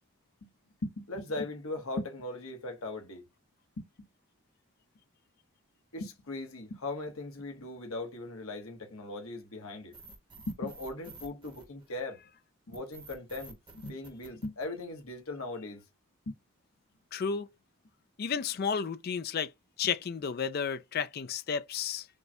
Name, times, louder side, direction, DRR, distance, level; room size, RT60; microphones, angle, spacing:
voice 1, 0.8-3.2 3.8-3.9 5.9-9.9 10.5-12.2 12.7-15.8 16.3-16.4, left 2 dB, 75° left, 1.1 m, -39 dB
sound 1, 9.9-12.2 12.7-15.2, right 3 dB, 20° right, 1.0 m, -51 dB
voice 2, 17.1-17.5 18.2-19.5 19.8-22.1, left 6 dB, 45° left, 0.4 m, -32 dB
5.3 x 2.2 x 2.7 m
head